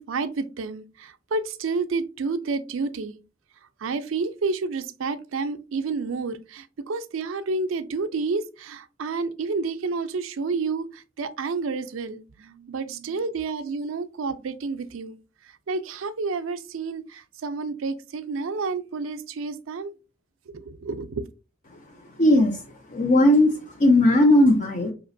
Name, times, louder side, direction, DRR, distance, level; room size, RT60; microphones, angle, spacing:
voice 1, 0.0-3.2 3.8-15.2 15.7-19.9 20.5-21.2, right 4 dB, 85° right, 0.4 m, -30 dB
voice 2, 22.2-22.6 22.9-24.9, left 1 dB, 40° left, 0.5 m, -17 dB
4.9 x 2.9 x 2.5 m
head